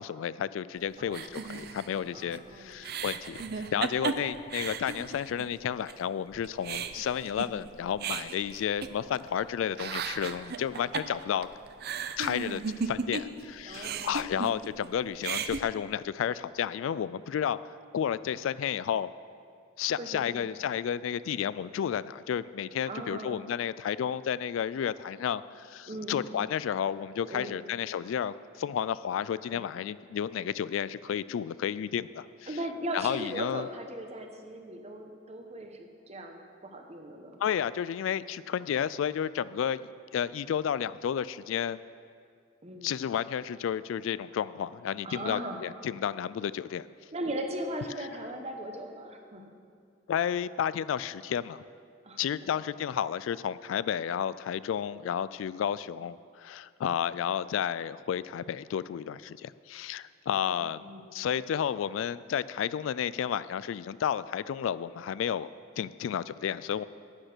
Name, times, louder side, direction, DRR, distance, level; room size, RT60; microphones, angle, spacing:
voice 1, 0.0-11.5 12.2-17.6 17.9-19.1 19.8-32.5 32.9-33.7 37.4-39.8 40.1-41.8 42.8-46.8 50.1-51.6 52.2-60.8 61.1-65.5 65.8-66.8, left 8 dB, 85° left, 17 dB, 0.3 m, -32 dB
voice 2, 1.0-1.3 2.1-2.9 13.6-14.4 20.0-20.5 22.9-23.4 25.9-26.2 27.3-27.6 29.4-29.7 32.5-37.4 42.6-43.0 45.0-45.6 47.1-49.5 52.0-52.2 60.4-61.1, right 1 dB, 35° right, 4 dB, 1.0 m, -39 dB
sound 1, 1.1-5.5 5.9-6.0 6.3-9.4 9.7-13.4 13.7-14.9 15.1-15.6, right 5 dB, 55° right, 0.5 m, -35 dB
9.9 x 8.8 x 6.1 m, 2.3 s
head